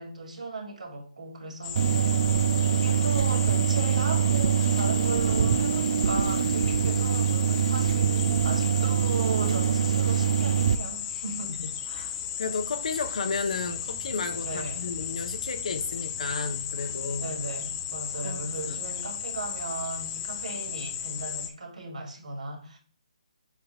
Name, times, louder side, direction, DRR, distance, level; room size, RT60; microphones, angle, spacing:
voice 1, 0.0-2.2 2.7-11.6 11.9-12.1 14.4-14.9 17.2-22.8, right 3 dB, 75° right, 2.5 m, -36 dB
sound 1, 1.6-21.5, left 9 dB, 25° left, 0.6 m, -35 dB
sound 2, 1.8-10.8, right 8 dB, 50° right, 0.5 m, -24 dB
voice 2, 12.4-17.3 18.2-18.8, left 4 dB, 65° left, 1.1 m, -33 dB
7.0 x 5.8 x 2.5 m
figure-of-eight pair, 150°, 4 cm